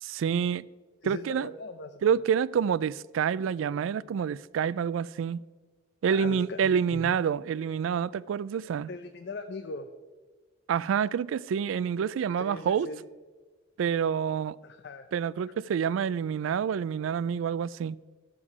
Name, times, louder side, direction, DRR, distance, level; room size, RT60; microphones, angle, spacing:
voice 1, 0.0-0.7 1.0-1.5 2.0-5.4 6.0-8.9 10.7-12.9 13.8-14.6 15.1-18.0, right 7 dB, 90° right, 0.3 m, -28 dB
voice 2, 1.0-2.1 6.1-7.1 8.9-9.9 12.4-13.0 14.6-15.1, left 3 dB, 60° left, 0.6 m, -40 dB
12.0 x 7.2 x 4.8 m
head